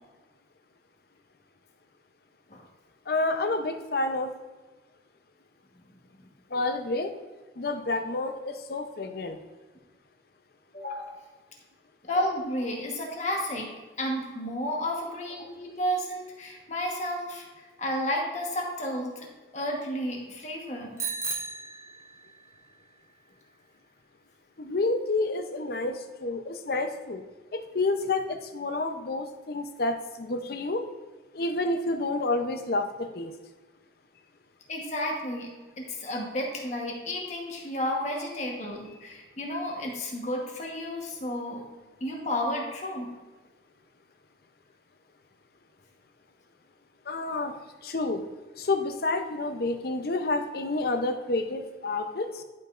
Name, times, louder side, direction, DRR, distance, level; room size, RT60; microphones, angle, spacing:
voice 1, 3.1-4.3 6.5-7.1 7.6-9.4 24.6-27.2 27.5-30.8 31.3-33.3 47.1-48.2 48.6-52.4, left 2 dB, 55° left, 7 dB, 0.7 m, -29 dB
voice 2, 10.7-11.2 12.0-13.7 14.0-17.4 17.8-19.3 19.5-21.0 34.7-41.6 42.0-43.1, equal, 40° left, -1 dB, 1.2 m, -32 dB
Bicycle bell, 21.0-22.5, right 4 dB, 15° right, 0.9 m, -35 dB
11.0 x 5.3 x 2.5 m, 1.3 s
head